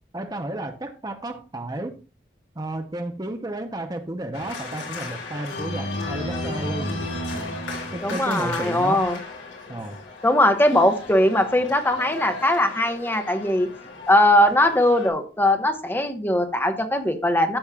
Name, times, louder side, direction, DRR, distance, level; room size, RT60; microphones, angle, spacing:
voice 1, 0.1-2.0 2.6-6.9 7.3-9.0 9.7-10.0, right 1 dB, 20° right, 6 dB, 0.7 m, -32 dB
Organ, 4.3-15.1, left 2 dB, 85° left, 3.9 m, -34 dB
voice 2, 8.0-9.2 10.2-13.7 14.1-17.6, left 1 dB, 10° left, 6 dB, 1.1 m, -20 dB
13.0 x 7.3 x 2.3 m, 0.34 s
head